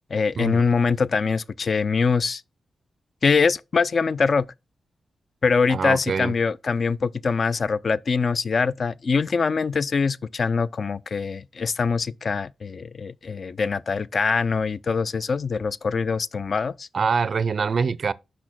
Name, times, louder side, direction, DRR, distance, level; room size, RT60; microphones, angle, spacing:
voice 1, 0.1-2.4 3.2-4.5 5.4-16.9, left 5 dB, 45° left, 0.3 m, -23 dB
voice 2, 5.7-6.3 16.9-18.1, right 5 dB, 50° right, 0.4 m, -24 dB
5.9 x 4.2 x 6.1 m
wide cardioid pair, 130°, 0 cm